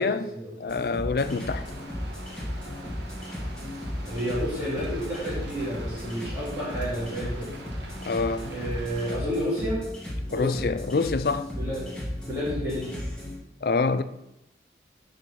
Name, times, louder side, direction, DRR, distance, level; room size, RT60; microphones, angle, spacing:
voice 1, 0.0-0.5 4.1-7.5 8.5-9.8 10.3-10.7 11.6-11.9 12.2-12.9, equal, 20° right, 2.6 m, -31 dB
voice 2, 0.6-1.6 8.1-8.5 10.3-11.5 13.6-14.0, left 4 dB, 55° left, 0.4 m, -26 dB
sound 1, 0.7-13.3, left 1 dB, 5° left, 2.1 m, -35 dB
Rain, 1.2-9.2, right 2 dB, 80° right, 1.3 m, -44 dB
8.9 x 4.2 x 5.8 m
head